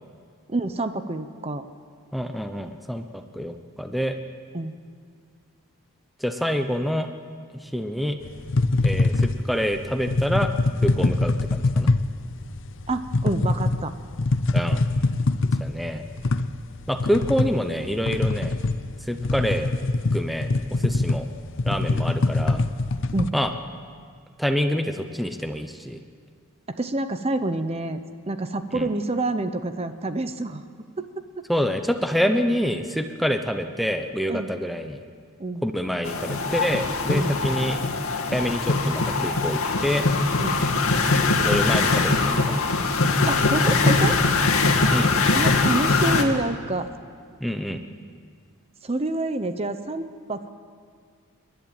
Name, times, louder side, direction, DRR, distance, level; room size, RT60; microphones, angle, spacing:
voice 1, 0.5-1.6 4.5-4.8 12.9-13.9 23.1-23.3 26.8-28.0 28.3-30.6 31.0-31.5 34.3-34.5 35.4-35.6 37.1-37.3 40.4-40.6 43.2-44.2 45.3-46.9 48.8-50.5, right 2 dB, 30° right, 10 dB, 0.8 m, -27 dB
voice 2, 2.1-4.2 6.2-7.1 7.5-8.2 8.8-10.5 10.8-11.9 14.5-14.8 15.6-16.0 16.9-18.6 19.0-19.7 20.1-21.3 21.7-22.6 23.3-23.5 24.4-26.0 28.7-28.9 31.5-35.0 35.6-37.8 38.3-40.1 41.4-42.6 44.9-45.1 47.4-47.8, equal, ahead, 6 dB, 0.8 m, -26 dB
sound 1, 8.2-23.3, left 2 dB, 60° left, 0.7 m, -24 dB
sound 2, 36.0-46.2, left 3 dB, 85° left, 2.0 m, -22 dB
29.0 x 11.5 x 8.9 m, 2.1 s
head